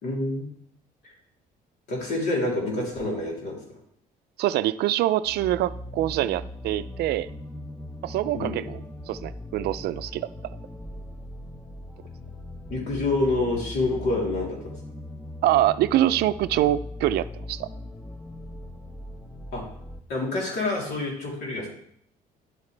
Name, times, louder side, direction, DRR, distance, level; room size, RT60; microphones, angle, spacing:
voice 1, 0.0-0.5 1.0-1.1 1.9-3.8 8.3-8.7 12.7-14.7 19.5-19.6 20.1-21.7, left 2 dB, 75° left, -2 dB, 3.3 m, -27 dB
voice 2, 4.4-7.3 8.0-8.6 9.1-10.3 15.4-17.7, right 14 dB, 70° right, 15 dB, 0.4 m, -24 dB
sound 1, 5.2-20.0, left 1 dB, 10° left, 0.8 m, -39 dB
10.5 x 8.2 x 3.3 m, 0.69 s
cardioid pair, 110°, 17 cm